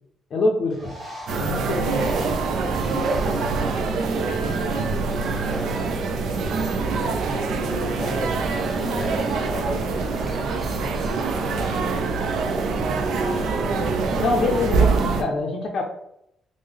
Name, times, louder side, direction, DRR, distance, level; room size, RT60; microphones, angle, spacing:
voice 1, 0.3-0.9 1.4-2.0 14.2-15.8, left 3 dB, 65° left, 0 dB, 0.4 m, -25 dB
Bird, 0.7-12.7, equal, 35° right, 1.1 m, -44 dB
sound 1, 1.3-15.2, right 4 dB, 80° right, 0.4 m, -24 dB
voice 2, 1.5-6.8 7.5-11.0 11.5-12.3 12.5-13.8, equal, 5° left, -1 dB, 1.1 m, -37 dB
sound 2, 8.8-9.6 10.9-11.8, right 1 dB, 15° right, 0.5 m, -41 dB
3.3 x 2.0 x 3.5 m, 0.77 s
cardioid pair, 80°, 0 cm